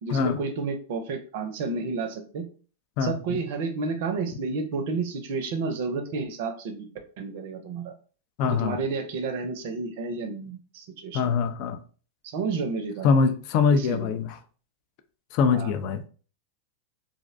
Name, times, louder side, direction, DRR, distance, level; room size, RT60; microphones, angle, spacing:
voice 1, 0.0-2.5 3.0-6.9 7.2-7.9 8.6-11.2 12.2-13.1 13.7-14.2 15.5-15.7, right 4 dB, 60° right, 0.5 m, -31 dB
voice 2, 3.0-3.4 8.4-8.8 11.1-11.8 13.0-14.3 15.3-16.0, left 5 dB, 50° left, 0.4 m, -23 dB
2.5 x 2.1 x 2.5 m
hypercardioid pair, 105°, 0 cm